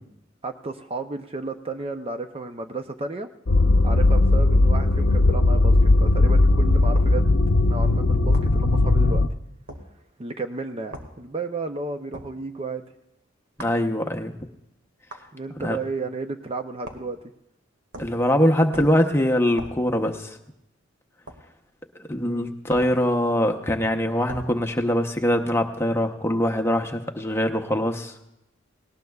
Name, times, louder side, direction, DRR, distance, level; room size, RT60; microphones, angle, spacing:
voice 1, 0.4-3.3 3.8-7.2 7.7-9.3 10.2-12.8 15.3-17.2 22.2-22.5, right 3 dB, 30° right, 7 dB, 0.5 m, -33 dB
sound 1, 3.5-9.3, left 2 dB, 60° left, 0.6 m, -18 dB
sound 2, 6.9-7.2 8.3-8.6 9.7-9.9 10.9-11.1 12.1-12.3 13.6-13.8 15.1-15.3 16.8-17.1 17.9-18.2 18.7-19.0 19.6-19.8 21.3-21.4 22.7-23.0 24.3-24.5, right 1 dB, 85° right, 1.8 m, -39 dB
voice 2, 13.6-14.4 15.6-15.8 18.0-20.4 22.1-28.1, equal, 15° left, 4 dB, 0.8 m, -23 dB
19.0 x 18.5 x 2.3 m, 0.86 s
head